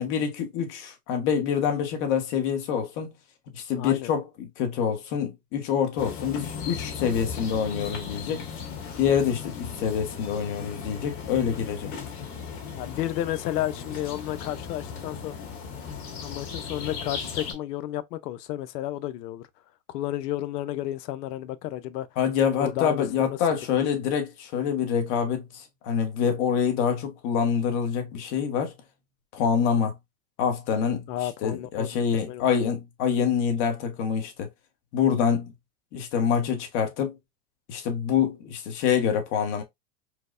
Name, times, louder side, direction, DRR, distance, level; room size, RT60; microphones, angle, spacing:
voice 1, 0.0-3.1 3.5-8.4 9.0-11.9 22.2-28.7 29.3-29.9 30.4-31.1 31.4-34.5 34.9-35.5 35.9-37.2 37.7-39.6, left 7 dB, 45° left, 1.1 m, -26 dB
voice 2, 3.8-4.1 12.8-15.3 16.2-19.5 19.9-22.1 22.6-23.4 23.7-23.8 31.1-32.5, left 13 dB, 85° left, 0.6 m, -32 dB
sound 1, 6.0-17.5, left 6 dB, 65° left, 1.9 m, -37 dB
4.5 x 2.1 x 2.4 m
supercardioid pair, 145°, 47 cm